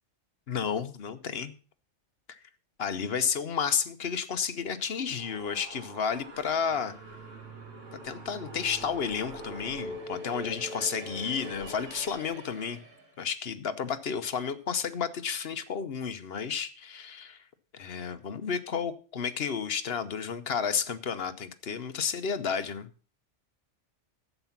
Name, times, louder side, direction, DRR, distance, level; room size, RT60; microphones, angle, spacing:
voice 1, 0.5-1.5 2.3-2.4 2.8-6.9 8.0-12.8 13.2-17.4 17.7-22.9, left 6 dB, 55° left, 11 dB, 1.1 m, -32 dB
sound 1, 4.8-13.1, right 1 dB, 85° right, 2.3 m, -43 dB
11.5 x 8.0 x 5.8 m, 0.38 s
omnidirectional pair, 1.2 m